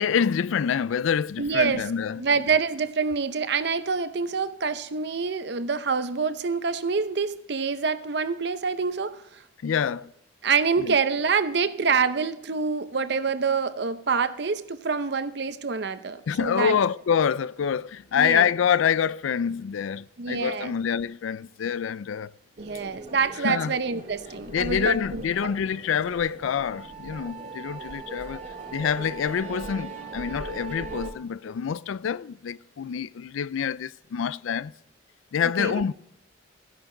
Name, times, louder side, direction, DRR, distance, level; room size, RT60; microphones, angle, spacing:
voice 1, 0.0-2.2 9.6-10.1 10.8-11.0 16.3-22.3 23.4-23.7 24.5-34.7 35.3-35.9, left 7 dB, 85° left, 0.4 m, -26 dB
voice 2, 1.4-1.8 2.2-9.2 10.4-16.8 18.1-18.5 20.2-20.7 22.6-25.2 35.6-35.8, right 5 dB, 55° right, 0.7 m, -26 dB
sound 1, 22.6-31.1, right 3 dB, 40° right, 1.9 m, -39 dB
14.5 x 10.5 x 3.9 m
head